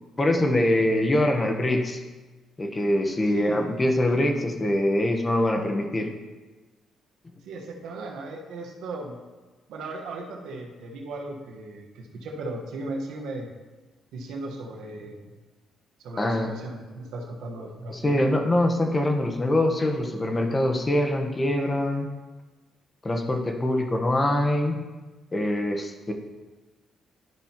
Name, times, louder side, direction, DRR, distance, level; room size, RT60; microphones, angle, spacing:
voice 1, 0.2-2.0 2.6-6.1 16.2-16.5 17.9-22.1 23.0-24.8 25.3-26.1, left 1 dB, 25° left, 4 dB, 1.1 m, -24 dB
voice 2, 3.2-3.6 7.5-9.2 9.7-13.5 14.1-15.3 16.0-18.3, right 2 dB, 85° right, 0 dB, 1.3 m, -36 dB
12.5 x 5.4 x 3.0 m, 1.3 s
cardioid pair, 90°, 0 cm